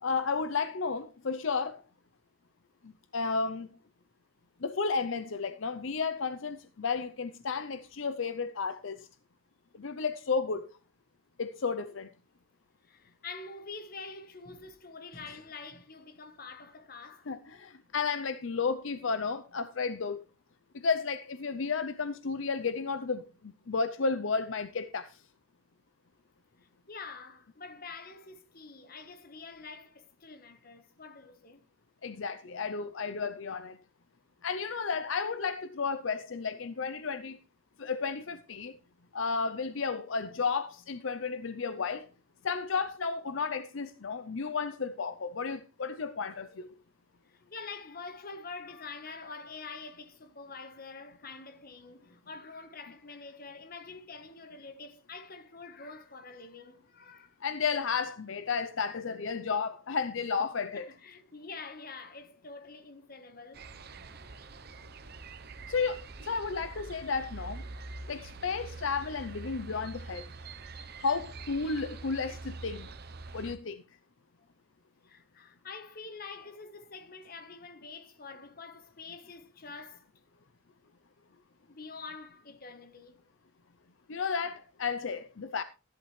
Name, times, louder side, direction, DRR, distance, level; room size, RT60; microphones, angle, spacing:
voice 1, 0.0-1.8 2.8-3.7 4.6-9.1 9.7-10.7 11.4-12.1 17.3-20.2 20.7-25.2 32.0-33.8 34.4-37.4 37.8-38.8 39.1-42.1 42.4-46.7 57.4-60.9 65.7-67.6 68.1-70.3 71.0-72.9 73.3-73.8 84.1-85.6, left 5 dB, 70° left, 0.6 m, -33 dB
voice 2, 12.8-17.3 26.9-31.7 46.3-46.7 47.3-57.4 60.7-63.7 67.7-67.8 75.0-80.1 81.7-83.2, left 4 dB, 45° left, 1.3 m, -46 dB
sound 1, 63.5-73.6, right 3 dB, 50° right, 0.8 m, -45 dB
13.5 x 11.0 x 3.2 m
head